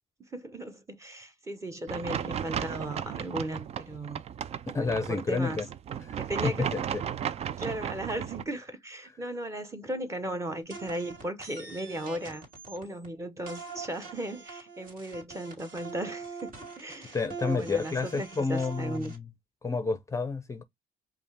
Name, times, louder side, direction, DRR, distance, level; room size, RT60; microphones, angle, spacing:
voice 1, 0.3-4.2 4.7-5.6 6.2-6.7 7.6-17.2 17.5-19.1, right 1 dB, 20° right, 0.9 m, -36 dB
sound 1, 1.9-8.4, right 9 dB, 40° right, 0.4 m, -35 dB
voice 2, 4.7-5.7 6.0-7.0 17.1-19.3 19.6-20.6, left 4 dB, 20° left, 0.6 m, -30 dB
sound 2, 10.7-13.1 13.5-19.2, right 4 dB, 60° right, 2.3 m, -43 dB
5.2 x 2.4 x 3.3 m
cardioid pair, 115°, 16 cm